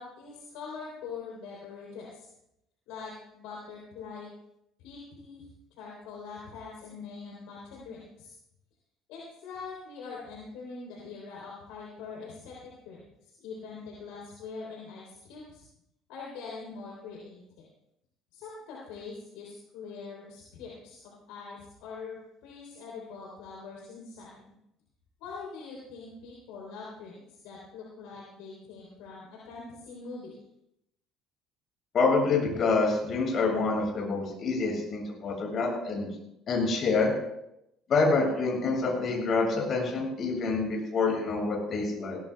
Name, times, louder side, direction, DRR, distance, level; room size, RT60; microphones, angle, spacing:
voice 1, 0.0-2.3 2.9-4.3 4.8-5.5 5.8-8.3 9.1-15.7 16.1-17.7 18.3-24.5 25.2-30.4, left 4 dB, 65° left, -4 dB, 3.4 m, -43 dB
voice 2, 31.9-36.1 36.5-37.1 37.9-42.2, left 3 dB, 45° left, -2 dB, 7.0 m, -27 dB
21.5 x 17.0 x 2.3 m, 0.82 s
figure-of-eight pair, 55°, 0 cm